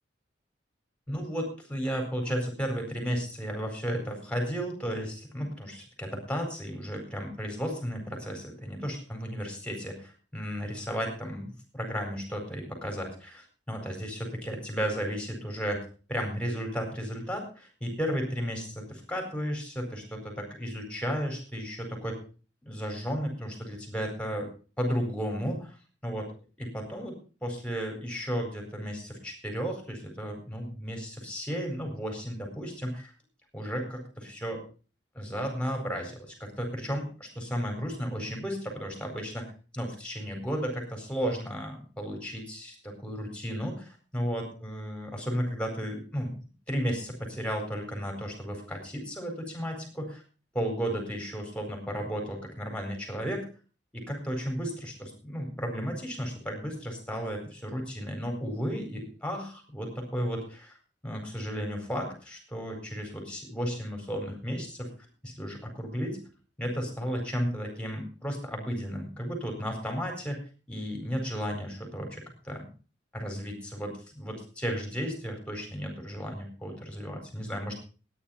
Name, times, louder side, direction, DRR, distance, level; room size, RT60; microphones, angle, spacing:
voice 1, 1.1-22.2 22.6-24.5 24.8-25.7 26.0-26.2 26.6-27.1 27.4-33.1 33.5-34.6 35.1-39.5 39.7-46.4 46.7-50.2 50.5-53.4 53.9-60.8 61.0-64.9 65.2-66.2 66.6-70.4 70.7-72.6 73.1-77.8, equal, 5° left, 3 dB, 4.5 m, -34 dB
14.0 x 9.9 x 5.7 m, 0.37 s
head